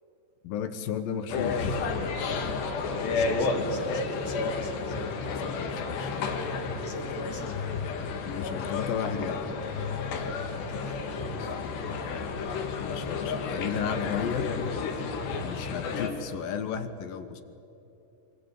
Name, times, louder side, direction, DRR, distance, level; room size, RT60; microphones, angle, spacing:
voice 1, 0.4-1.9 5.3-6.4 8.2-9.4 12.8-14.5 15.4-17.4, left 7 dB, 70° left, 10 dB, 2.6 m, -34 dB
sound 1, 1.3-16.1, left 4 dB, 90° left, 4.2 m, -31 dB
voice 2, 2.8-5.0 6.8-7.6 10.5-11.6, left 1 dB, 35° left, 3 dB, 2.3 m, -44 dB
25.0 x 24.5 x 9.2 m, 2.8 s
omnidirectional pair, 4.7 m